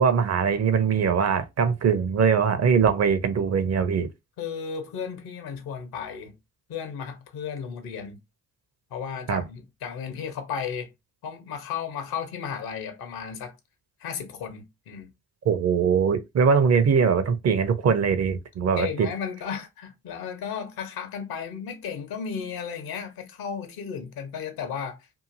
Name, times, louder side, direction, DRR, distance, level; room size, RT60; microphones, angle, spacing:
voice 1, 0.0-4.1 9.3-9.4 15.4-19.1, right 6 dB, 40° right, 0.7 m, -22 dB
voice 2, 4.4-6.4 6.7-8.2 8.9-10.9 11.2-13.5 14.0-15.1 18.8-25.0, left 7 dB, 65° left, 1.0 m, -34 dB
2.8 x 2.6 x 2.6 m
hypercardioid pair, 45°, 39 cm